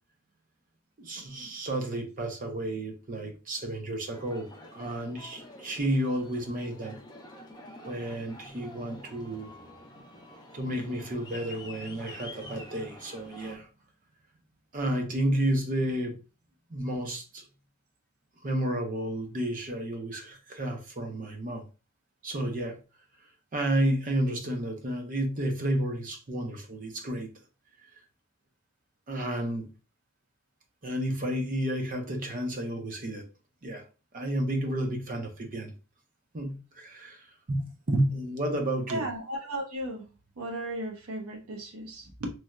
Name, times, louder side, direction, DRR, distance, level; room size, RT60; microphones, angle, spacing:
voice 1, 1.0-7.0 7.8-9.5 10.5-13.7 14.7-16.2 16.7-17.4 18.4-21.7 22.2-22.8 23.5-27.3 29.1-29.7 30.8-33.3 33.6-33.8 34.1-35.7 36.3-39.0, right 1 dB, 40° right, 0.7 m, -31 dB
Aircraft, 4.1-13.6, left 1 dB, 20° left, 0.6 m, -48 dB
voice 2, 38.9-40.1 40.4-42.3, right 1 dB, 90° right, 0.9 m, -35 dB
3.1 x 2.7 x 2.2 m
head